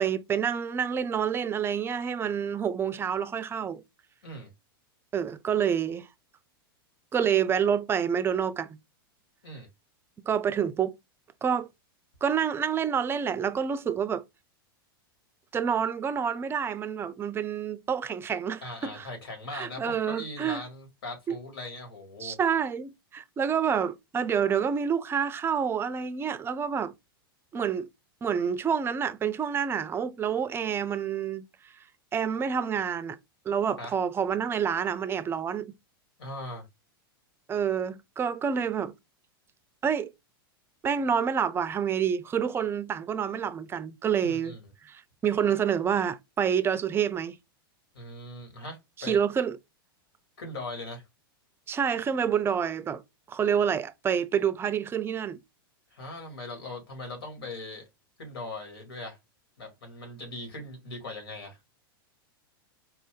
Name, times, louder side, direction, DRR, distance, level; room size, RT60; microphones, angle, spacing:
voice 1, 0.0-3.8 5.1-6.1 7.1-8.8 10.3-10.9 11.4-11.7 12.2-14.2 15.5-19.1 19.5-20.6 21.3-21.4 22.2-26.9 27.5-27.9 28.2-31.5 32.1-33.2 33.5-35.7 37.5-38.9 39.8-40.1 40.8-44.6 44.8-47.4 49.0-49.6 51.7-53.0 53.3-55.4, right 7 dB, 20° right, 0.4 m, -28 dB
voice 2, 18.6-22.4 33.8-34.0 36.2-36.7 44.2-44.6 47.9-49.2 50.4-51.0 55.9-57.8 58.2-59.2 59.6-61.6, left 2 dB, 80° left, 2.4 m, -40 dB
4.4 x 2.6 x 3.7 m
hypercardioid pair, 115°, 12 cm